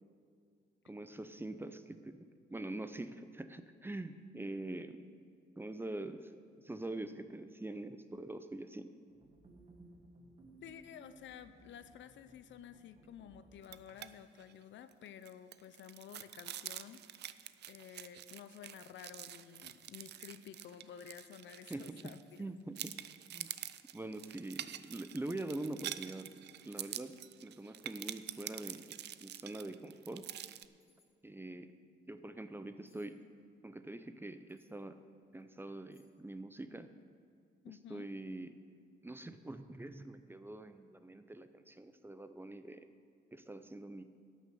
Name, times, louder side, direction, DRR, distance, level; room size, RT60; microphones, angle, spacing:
voice 1, 0.8-5.1 5.6-6.3 6.6-8.9 21.7-22.0 22.4-22.9 23.3-23.5 23.9-26.3 26.6-27.2 27.4-30.3 31.2-31.7 32.1-33.2 33.6-35.0 35.3-36.9 37.7-38.5 39.0-42.9 43.3-44.0, right 2 dB, 10° right, 10 dB, 0.5 m, -44 dB
sound 1, 9.1-14.1, right 2 dB, 30° right, 1.5 m, -61 dB
voice 2, 10.6-17.4 17.7-22.5 37.6-38.1, left 9 dB, 70° left, 12 dB, 0.6 m, -52 dB
sound 2, 13.6-14.1 14.4-14.5 14.9-22.4 22.8-30.7, right 11 dB, 60° right, 0.4 m, -47 dB
sound 3, 20.0-20.3 20.6-21.1 21.5-21.6 22.2-22.6 23.3-23.4 24.9-25.0 25.8-26.1 27.9-28.1 28.5-29.0 30.8-31.1 32.9-33.1 34.5-34.8 35.3-35.4 35.9-36.3 36.6-36.7, left 3 dB, 25° left, 2.4 m, -72 dB
12.0 x 6.5 x 6.8 m, 2.2 s
cardioid pair, 90°, 20 cm